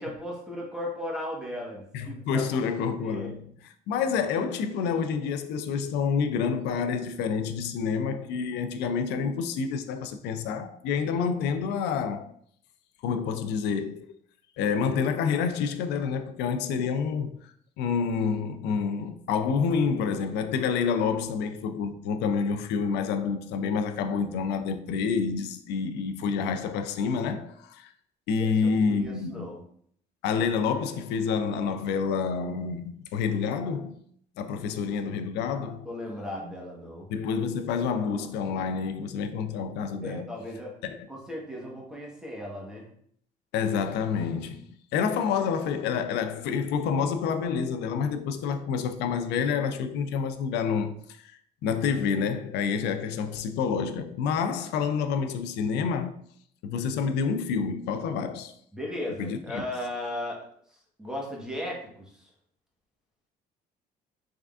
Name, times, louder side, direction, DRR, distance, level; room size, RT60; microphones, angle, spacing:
voice 1, 0.0-2.8 3.0-3.4 28.4-29.6 34.6-34.9 35.8-37.1 40.0-40.7 41.1-42.9 58.7-60.4 61.0-62.3, left 1 dB, 5° right, 1.1 m, -36 dB
voice 2, 1.9-12.3 13.0-14.1 14.6-17.4 17.8-27.9 28.3-29.5 30.2-34.0 34.4-35.9 37.1-40.3 40.8-41.0 43.5-44.6 44.9-56.2 56.6-58.5 59.2-59.6, left 6 dB, 85° left, 0.4 m, -28 dB
3.6 x 3.4 x 2.4 m
cardioid pair, 110°, 17 cm